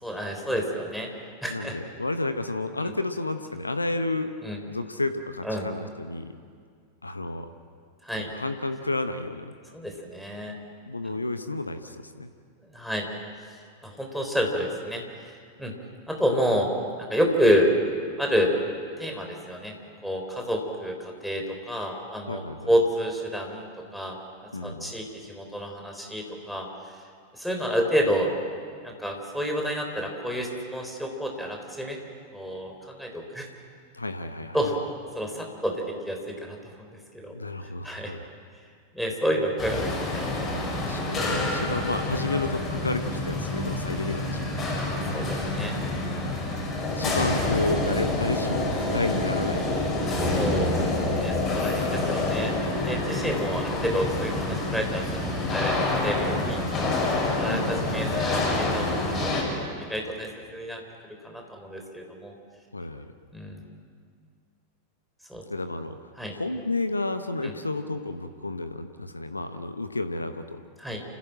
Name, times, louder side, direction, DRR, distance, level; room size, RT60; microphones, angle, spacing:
voice 1, 0.0-1.1 1.4-1.8 2.8-2.9 4.4-4.6 5.4-5.7 8.0-8.3 9.7-10.6 11.1-11.2 12.7-13.1 13.5-13.6 13.8-15.7 16.1-17.7 18.2-18.5 19.0-19.7 20.0-24.2 24.6-26.7 27.3-28.3 28.8-32.0 32.3-33.5 34.5-34.8 35.1-37.3 37.6-38.1 38.9-40.2 44.9-45.7 50.1-52.5 52.8-56.6 57.3-59.2 59.5-60.8 61.2-62.3 63.3-63.6 65.3-65.4 66.2-66.3 67.4-67.5 70.8-71.0, equal, ahead, 1 dB, 3.8 m, -29 dB
voice 2, 1.5-4.3 4.7-6.4 7.0-7.5 8.1-9.5 10.8-12.3 22.3-22.7 24.5-25.1 33.9-34.6 37.3-38.3 39.1-39.2 40.8-44.7 46.9-50.1 57.5-58.1 62.7-63.1 65.5-70.6, left 2 dB, 80° left, 10 dB, 0.9 m, -31 dB
sound 1, 39.6-59.4, left 2 dB, 20° left, 6.2 m, -27 dB
28.5 x 16.0 x 7.6 m, 2.1 s
figure-of-eight pair, 90°, 0 cm